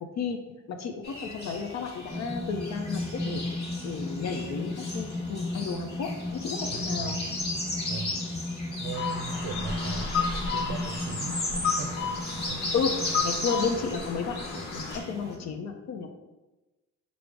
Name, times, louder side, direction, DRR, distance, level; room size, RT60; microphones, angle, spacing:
voice 1, 0.7-3.4 3.8-7.2 12.7-16.1, left 5 dB, 60° left, 5 dB, 0.5 m, -32 dB
sound 1, 1.0-15.3, left 1 dB, 30° left, 1.1 m, -36 dB
sound 2, 2.1-15.5, left 2 dB, ahead, 0.4 m, -36 dB
voice 2, 6.7-7.2 7.9-8.2 8.8-12.1 12.4-12.8, right 5 dB, 70° right, 8 dB, 0.5 m, -39 dB
sound 3, 8.9-15.0, left 5 dB, 85° left, 0.8 m, -33 dB
4.8 x 2.1 x 4.5 m, 1.1 s
cardioid pair, 90°, 30 cm